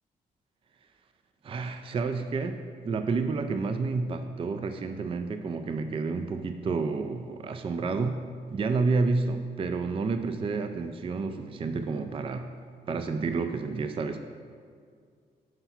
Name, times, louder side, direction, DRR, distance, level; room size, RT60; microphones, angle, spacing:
voice 1, 1.4-8.2 8.5-12.5 12.9-14.2, right 4 dB, 30° right, 8 dB, 0.4 m, -30 dB
5.7 x 4.6 x 5.8 m, 2.1 s
cardioid pair, 75°, 17 cm